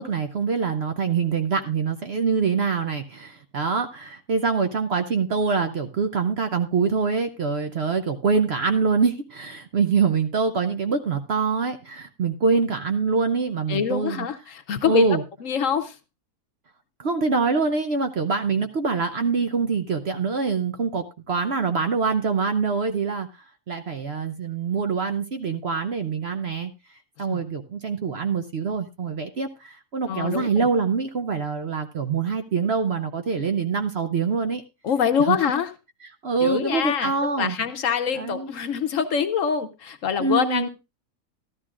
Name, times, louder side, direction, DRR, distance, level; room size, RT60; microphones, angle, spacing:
voice 1, 0.0-14.3 14.9-15.2 17.0-23.3 23.7-26.7 27.2-34.6 35.3-35.5 36.2-37.6 38.1-38.5 40.2-40.7, right 5 dB, 55° right, 7 dB, 0.8 m, -24 dB
voice 2, 13.7-16.0 27.3-27.4 30.1-30.7 34.8-35.7 36.4-40.7, left 7 dB, 60° left, 9 dB, 1.1 m, -25 dB
13.5 x 12.0 x 2.4 m, 0.26 s
omnidirectional pair, 1.6 m